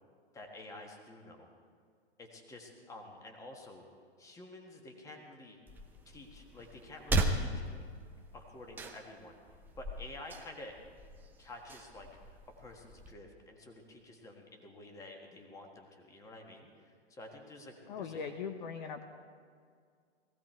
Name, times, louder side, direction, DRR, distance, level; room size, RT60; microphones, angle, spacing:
voice 1, 0.3-1.5 2.2-3.8 4.2-5.6 6.0-7.7 8.3-10.8 11.4-18.2, left 2 dB, 10° left, 2 dB, 1.5 m, -50 dB
sound 1, 5.7-13.1, right 2 dB, 5° right, 0.6 m, -38 dB
voice 2, 17.9-19.0, left 6 dB, 45° left, 7 dB, 1.0 m, -40 dB
19.0 x 15.5 x 4.5 m, 2.1 s
hypercardioid pair, 140°, 32 cm